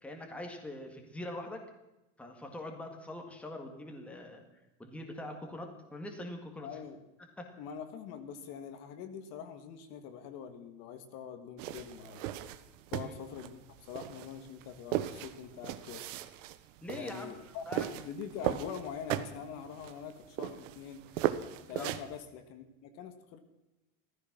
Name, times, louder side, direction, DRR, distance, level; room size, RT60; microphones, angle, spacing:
voice 1, 0.0-1.6 2.2-4.4 4.8-6.7 7.4-7.5 13.0-13.1 16.8-17.4 17.7-17.9 21.7-21.9, left 1 dB, 5° left, 3 dB, 1.8 m, -43 dB
voice 2, 6.6-7.0 7.6-12.3 12.9-16.0 16.9-21.0 21.7-23.4, left 7 dB, 40° left, 8 dB, 1.7 m, -44 dB
sound 1, 11.6-22.2, right 13 dB, 70° right, 1.4 m, -37 dB
16.0 x 14.5 x 6.1 m, 0.95 s
supercardioid pair, 175°, 39 cm